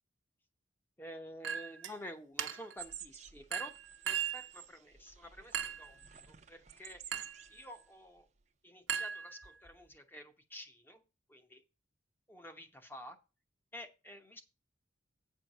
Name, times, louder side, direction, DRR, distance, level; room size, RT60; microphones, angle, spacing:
voice 1, 1.0-3.7 4.0-7.0 7.5-8.3 8.6-11.0 11.3-11.6 12.3-13.2 13.7-14.4, equal, 10° left, 6 dB, 0.9 m, -50 dB
Chink clink, 1.4-2.0 2.4-2.8 3.5-4.5 5.5-5.9 7.1-7.5 8.9-9.7, right 8 dB, 85° right, 1.0 m, -38 dB
sound 1, 2.8-8.4, right 9 dB, 35° right, 0.7 m, -53 dB
8.9 x 4.6 x 6.6 m, 0.31 s
head